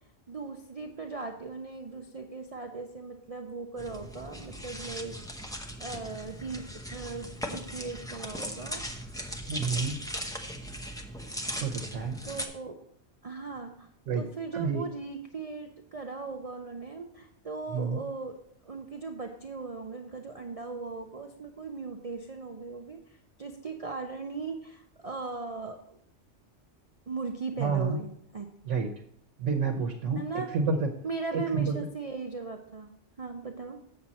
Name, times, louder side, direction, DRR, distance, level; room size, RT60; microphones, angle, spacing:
voice 1, 0.3-9.3 12.2-12.7 13.2-18.4 18.6-26.0 27.1-28.5 30.1-30.5 31.0-32.9 33.2-33.8, right 4 dB, 40° right, 4 dB, 0.6 m, -38 dB
sound 1, 3.8-12.5, equal, 5° left, 0.7 m, -38 dB
voice 2, 9.5-10.0 11.6-12.2 14.1-14.3 14.5-14.8 17.7-18.0 27.6-28.0 28.7-28.9 29.4-30.2 30.5-30.9 31.3-31.7, right 5 dB, 85° right, 3 dB, 1.2 m, -29 dB
7.5 x 7.4 x 4.1 m, 0.67 s
omnidirectional pair, 1.2 m